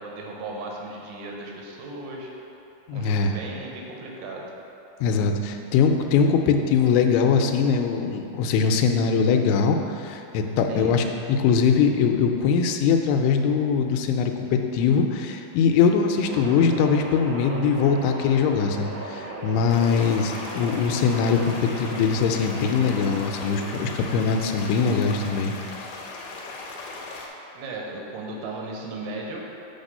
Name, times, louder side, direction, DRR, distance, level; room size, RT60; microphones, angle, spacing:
voice 1, 0.0-2.3 2.9-4.5 10.7-11.0 27.5-29.4, right 2 dB, 85° right, -1 dB, 3.0 m, -36 dB
voice 2, 2.9-3.3 5.0-25.5, left 6 dB, 90° left, 5 dB, 2.6 m, -22 dB
sound 1, 16.2-23.7, right 2 dB, 70° right, 2.0 m, -37 dB
sound 2, 19.7-27.3, left 3 dB, 75° left, 2.1 m, -38 dB
8.0 x 4.3 x 5.3 m, 2.9 s
omnidirectional pair, 4.6 m